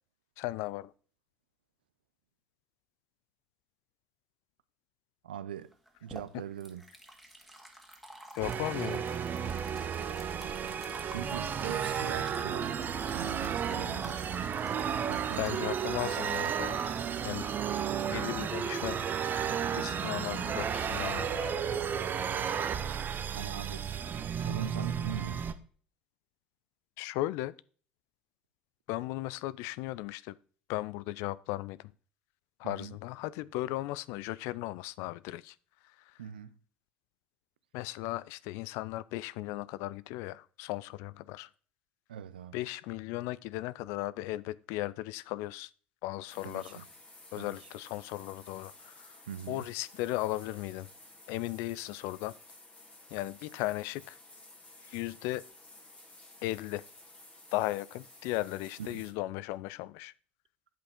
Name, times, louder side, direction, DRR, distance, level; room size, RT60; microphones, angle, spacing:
voice 1, 0.4-0.9 8.3-9.0 15.4-16.8 17.2-17.5 18.1-19.0 19.7-21.6 27.0-27.5 28.9-30.3 30.7-31.9 32.6-35.6 36.1-36.2 37.7-41.5 42.5-45.7 46.0-46.8 47.3-49.1 49.5-50.9 51.3-52.3 53.1-54.2 54.8-55.4 56.4-56.8 57.5-60.1, left 17 dB, 60° left, 0.4 m, -36 dB
voice 2, 5.2-5.7 6.0-6.8 11.1-14.2 15.0-15.7 23.3-23.9 24.4-25.5 32.6-33.0 36.2-36.5 42.1-42.6 46.4-46.8 47.4-47.6 49.3-49.6 58.8-59.0, right 9 dB, 80° right, 0.5 m, -41 dB
sound 1, 5.7-18.7, right 1 dB, ahead, 2.0 m, -51 dB
sound 2, 8.4-25.5, right 8 dB, 40° right, 0.8 m, -33 dB
sound 3, 46.3-59.1, left 2 dB, 25° left, 2.1 m, -54 dB
8.9 x 5.3 x 4.3 m
figure-of-eight pair, 60°, 5 cm